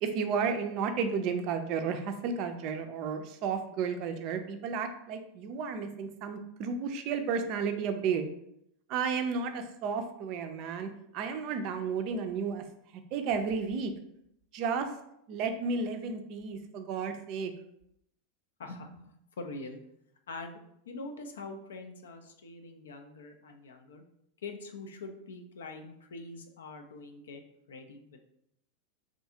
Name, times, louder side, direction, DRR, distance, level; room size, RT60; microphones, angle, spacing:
voice 1, 0.0-8.2 8.9-12.6 13.1-13.9 14.5-14.9 15.3-17.5, right 5 dB, 50° right, 7 dB, 0.3 m, -32 dB
voice 2, 18.6-19.8 20.3-20.6 20.9-24.0 24.4-27.4 27.7-28.3, left 3 dB, 80° left, 5 dB, 0.3 m, -44 dB
2.5 x 2.3 x 2.7 m, 0.77 s
hypercardioid pair, 95°, 0 cm